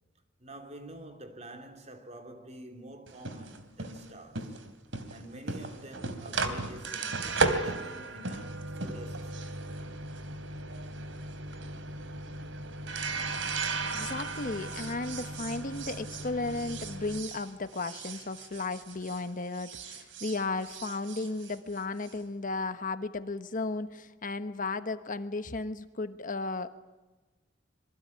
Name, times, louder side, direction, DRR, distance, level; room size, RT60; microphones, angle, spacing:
voice 1, 0.4-4.6 5.1-9.5, right 1 dB, 35° right, 3.4 m, -47 dB
sound 1, 3.1-19.3 19.5-22.1, right 3 dB, 75° right, 3.1 m, -36 dB
voice 2, 13.9-26.7, left 3 dB, 45° left, 1.2 m, -34 dB
26.0 x 23.0 x 9.7 m
head